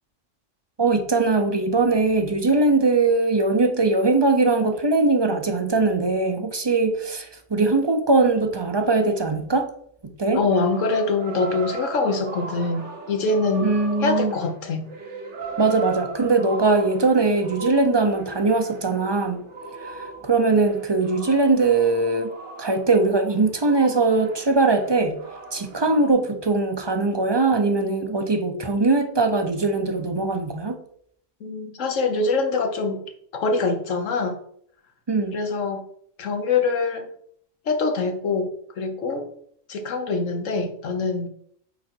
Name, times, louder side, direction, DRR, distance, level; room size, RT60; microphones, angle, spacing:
voice 1, 0.8-9.7 10.0-10.4 13.6-14.3 15.6-19.5 19.8-22.3 22.6-25.2 25.5-30.8 35.1-35.3, right 3 dB, 25° right, 6 dB, 0.6 m, -21 dB
voice 2, 10.3-12.8 13.1-13.7 14.0-14.8 31.4-33.0 33.3-34.4 35.3-35.9 36.2-37.1 37.7-39.3 39.7-41.3, left 3 dB, 80° left, 6 dB, 1.4 m, -24 dB
sound 1, 10.5-26.1, right 3 dB, 65° right, 1.5 m, -38 dB
8.9 x 3.8 x 4.6 m, 0.65 s
omnidirectional pair, 1.3 m